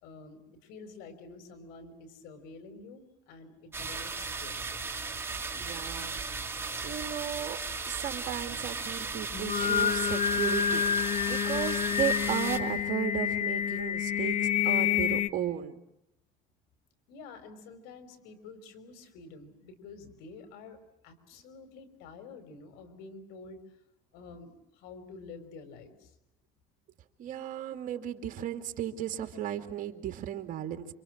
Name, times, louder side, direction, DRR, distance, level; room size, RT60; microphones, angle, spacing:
voice 1, 0.0-4.6 17.1-23.6 24.1-26.1 27.9-28.0, left 4 dB, 85° left, 9 dB, 5.4 m, -49 dB
sound 1, 3.7-12.6, right 4 dB, 15° right, 2.7 m, -36 dB
voice 2, 5.5-6.6 6.8-7.6 7.8-15.7 27.2-30.9, right 10 dB, 55° right, 7 dB, 2.9 m, -35 dB
Singing, 9.3-15.3, left 8 dB, 45° left, 1.1 m, -28 dB
28.5 x 26.5 x 7.6 m, 0.85 s
cardioid pair, 120°, 16 cm